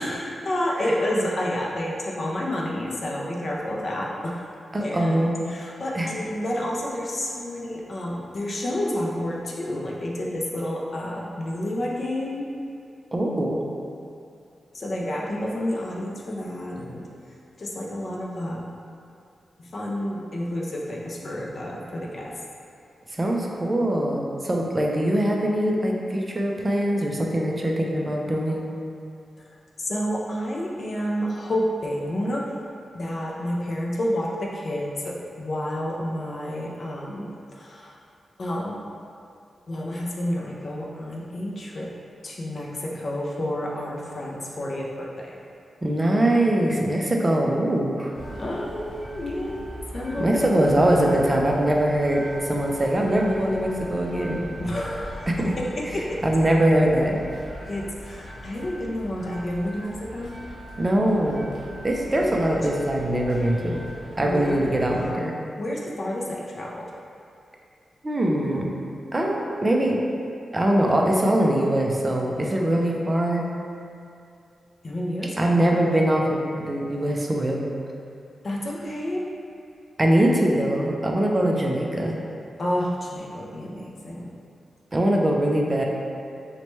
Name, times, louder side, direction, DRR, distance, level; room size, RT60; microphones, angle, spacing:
voice 1, 0.0-4.4 4.8-12.5 14.7-17.0 17.6-18.7 19.6-22.3 29.4-29.5 29.8-32.4 32.9-38.0 38.4-38.8 39.7-41.9 42.2-45.4 48.3-50.7 54.6-56.2 57.7-60.3 62.3-62.4 62.7-62.8 64.2-64.8 65.6-66.9 74.8-75.9 78.4-79.2 82.6-84.3, left 1 dB, 40° left, -3 dB, 0.4 m, -30 dB
voice 2, 4.7-5.4 5.9-6.1 13.1-13.7 23.1-28.7 45.8-48.2 50.2-54.5 55.3-55.5 56.2-57.2 60.8-61.5 61.8-63.9 64.2-65.3 68.0-68.7 69.1-70.0 70.5-73.5 75.4-77.6 80.0-82.1 84.9-85.8, right 1 dB, 20° right, 0 dB, 0.3 m, -22 dB
sound 1, 48.1-65.1, equal, 60° left, 0.8 m, -40 dB
4.0 x 2.2 x 3.0 m, 2.5 s
wide cardioid pair, 150°, 0 cm